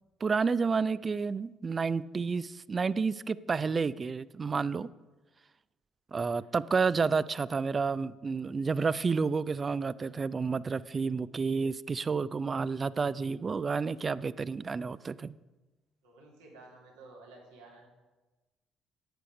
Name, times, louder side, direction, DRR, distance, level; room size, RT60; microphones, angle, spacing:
voice 1, 0.2-4.9 6.1-15.4, right 5 dB, 40° right, 18 dB, 0.4 m, -30 dB
voice 2, 16.0-17.9, right 2 dB, 85° right, -2 dB, 2.6 m, -53 dB
10.5 x 8.3 x 5.2 m, 1.2 s
hypercardioid pair, 50°, 0 cm